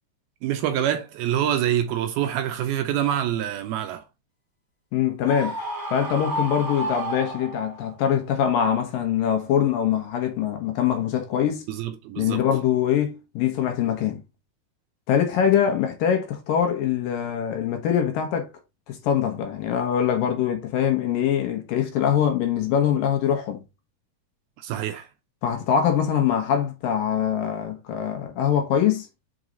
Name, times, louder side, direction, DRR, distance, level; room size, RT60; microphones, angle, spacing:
voice 1, 0.4-4.0 11.7-12.4 24.6-25.1, right 11 dB, 75° right, 2.4 m, -26 dB
voice 2, 4.9-5.6 5.9-11.7 12.2-14.2 15.1-18.5 18.9-23.6 25.4-29.1, left 9 dB, 70° left, 2.5 m, -23 dB
Screaming, 5.2-7.9, right 1 dB, 15° right, 0.7 m, -31 dB
6.3 x 4.7 x 3.9 m
omnidirectional pair, 4.7 m